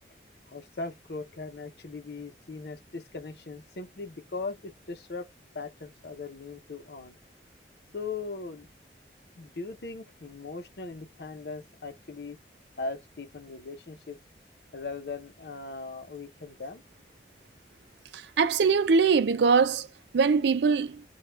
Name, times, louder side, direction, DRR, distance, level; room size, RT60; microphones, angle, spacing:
voice 1, 0.5-5.3 5.5-7.2 7.9-8.7 9.4-12.4 12.8-14.2 14.7-16.8, left 3 dB, 70° left, 0.7 m, -39 dB
voice 2, 18.1-19.9 20.1-21.0, right 5 dB, 80° right, 0.4 m, -22 dB
3.1 x 2.3 x 3.3 m
head